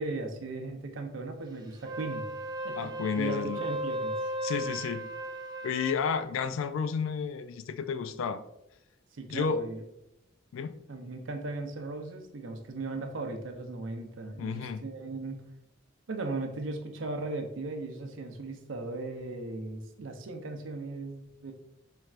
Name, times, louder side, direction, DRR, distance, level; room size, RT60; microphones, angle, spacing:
voice 1, 0.0-2.3 2.6-4.2 9.1-9.8 10.9-15.4 16.1-21.5, right 3 dB, 75° right, 4 dB, 0.6 m, -37 dB
Wind instrument woodwind instrument, 1.7-6.0, right 1 dB, 20° right, 0.4 m, -36 dB
voice 2, 2.8-3.6 4.4-5.0 5.6-8.4 9.3-9.6 10.5-10.7 14.4-14.8, left 6 dB, 80° left, 12 dB, 0.3 m, -31 dB
4.3 x 3.2 x 2.4 m, 0.83 s
head